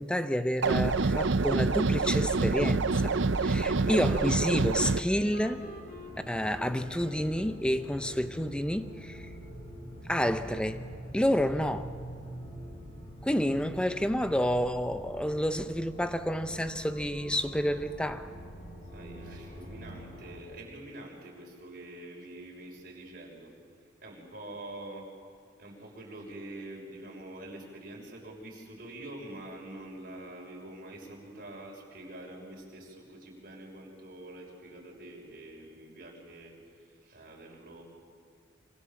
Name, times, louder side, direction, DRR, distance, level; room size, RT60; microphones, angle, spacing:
voice 1, 0.0-5.6 6.3-9.3 10.1-10.8 11.1-11.9 13.2-18.3, equal, 5° left, 10 dB, 0.8 m, -29 dB
sound 1, 0.6-5.0, right 3 dB, 70° right, 0.7 m, -26 dB
Wind instrument woodwind instrument, 2.9-8.0, left 1 dB, 50° left, 4.1 m, -47 dB
sound 2, 4.0-20.4, equal, 35° left, 7.4 m, -45 dB
voice 2, 18.8-23.5 23.8-25.1 25.6-37.8, right 1 dB, 50° right, -2 dB, 6.1 m, -46 dB
27.0 x 25.5 x 7.2 m, 2.2 s
head